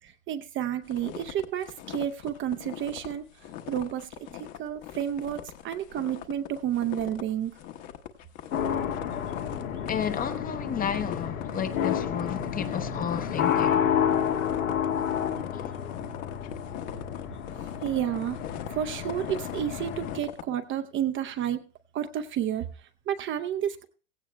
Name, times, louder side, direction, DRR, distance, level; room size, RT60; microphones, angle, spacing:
voice 1, 0.0-7.5 17.6-21.6 21.9-23.8, right 10 dB, 30° right, 0.6 m, -31 dB
sound 1, 0.8-20.4, left 11 dB, 50° left, 1.2 m, -42 dB
sound 2, 8.5-20.2, left 8 dB, 90° left, 1.8 m, -30 dB
voice 2, 9.8-13.9 15.7-15.8, left 8 dB, 20° left, 0.7 m, -32 dB
16.5 x 15.5 x 2.2 m
hypercardioid pair, 105°, 40 cm